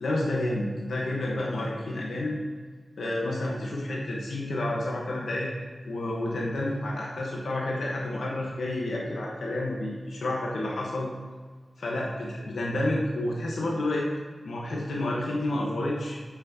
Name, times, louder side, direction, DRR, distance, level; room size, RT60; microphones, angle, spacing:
voice 1, 0.0-2.4 3.0-5.5 5.8-11.1 11.8-14.1 14.4-16.4, left 1 dB, 90° left, -3 dB, 1.1 m, -30 dB
8.2 x 5.7 x 2.8 m, 1.5 s
wide cardioid pair, 65°, 0 cm